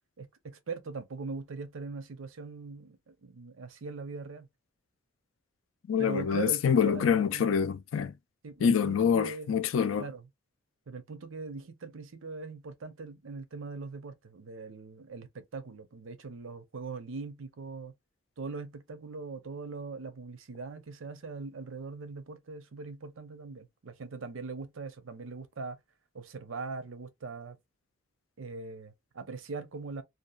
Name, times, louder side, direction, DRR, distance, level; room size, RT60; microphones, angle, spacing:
voice 1, 0.2-4.5 6.0-7.4 8.4-9.6 10.0-10.3 10.9-17.9 18.4-25.8 26.1-27.6 28.4-30.0, right 4 dB, 85° right, 0.6 m, -41 dB
voice 2, 5.9-8.1 8.6-10.1, left 7 dB, 85° left, 0.4 m, -26 dB
2.8 x 2.3 x 2.2 m
head